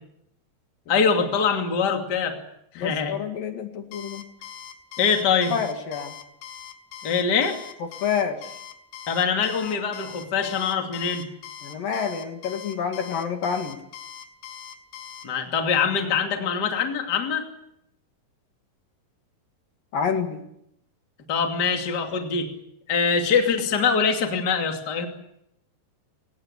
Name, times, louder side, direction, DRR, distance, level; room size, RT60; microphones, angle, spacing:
voice 1, 0.9-2.4 2.7-3.1 5.0-5.5 7.0-7.6 9.1-11.3 15.2-17.5 21.3-22.5 22.9-25.1, left 6 dB, 30° left, 4 dB, 2.5 m, -23 dB
voice 2, 2.8-4.3 5.5-6.2 8.0-8.5 11.6-13.8 19.9-20.4, left 7 dB, 60° left, 6 dB, 3.5 m, -28 dB
Alarm, 3.9-15.3, left 9 dB, 85° left, 3.9 m, -41 dB
25.0 x 18.5 x 9.8 m, 0.79 s
omnidirectional pair, 4.9 m